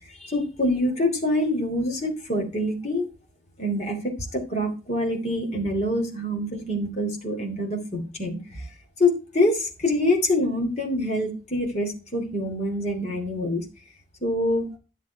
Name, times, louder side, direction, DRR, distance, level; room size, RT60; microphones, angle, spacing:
voice 1, 0.2-3.1 3.6-8.6 9.0-13.6 14.2-14.6, left 1 dB, 35° left, 1 dB, 3.0 m, -25 dB
11.5 x 7.2 x 4.6 m, 0.31 s
head